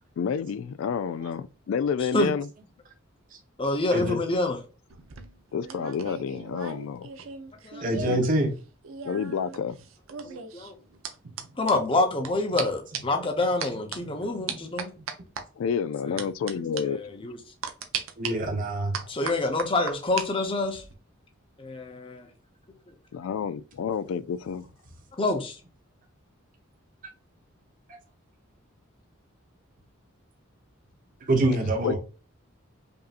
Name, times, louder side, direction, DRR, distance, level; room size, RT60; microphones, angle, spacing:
voice 1, 0.2-2.5 5.5-7.1 8.0-8.2 9.0-9.8 15.6-17.0 23.1-24.7 31.8-32.0, left 7 dB, 75° left, 0.3 m, -29 dB
voice 2, 3.6-4.6 7.6-7.8 10.2-10.7 11.6-14.9 16.1-16.2 16.8-17.4 19.1-20.8 21.6-22.3 25.2-25.6, left 2 dB, 25° left, 0.8 m, -27 dB
sound 1, 4.9-8.3 8.6-12.3 12.6-12.7 12.9-13.2 13.6-14.0 14.5-15.4 16.2-16.5 16.8-16.9 17.6-18.3 18.9-20.3 20.6-20.9, right 6 dB, 75° right, 0.6 m, -37 dB
voice 3, 7.8-8.5 14.0-14.6 18.2-19.1 31.3-32.0, right 1 dB, 40° right, 0.8 m, -26 dB
5.2 x 2.7 x 2.5 m
head